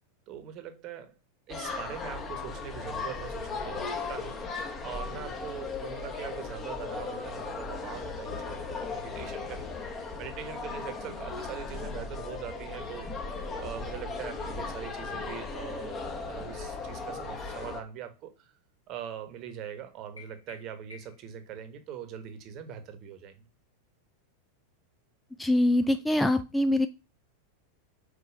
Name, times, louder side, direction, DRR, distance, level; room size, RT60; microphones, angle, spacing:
voice 1, 0.3-1.1 1.5-4.3 4.8-13.1 13.6-16.0 16.2-18.5 18.9-23.5, right 9 dB, 40° right, 1.2 m, -42 dB
sound 1, 1.5-17.8, left 4 dB, 25° left, 1.3 m, -37 dB
sound 2, 20.2-21.4, left 7 dB, 85° left, 2.2 m, -52 dB
voice 2, 25.4-26.9, left 1 dB, 5° left, 0.4 m, -24 dB
5.1 x 4.3 x 5.0 m
figure-of-eight pair, 90°, 0 cm